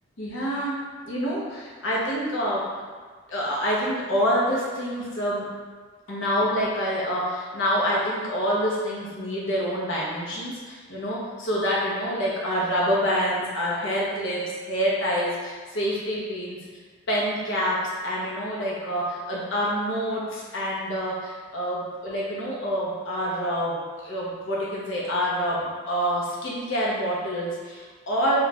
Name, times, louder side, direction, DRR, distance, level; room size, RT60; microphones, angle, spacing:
voice 1, 0.2-0.8 1.0-2.6 3.3-5.5 6.1-16.6 17.1-28.5, equal, 65° left, -6 dB, 0.8 m, -27 dB
4.1 x 2.5 x 2.3 m, 1.5 s
head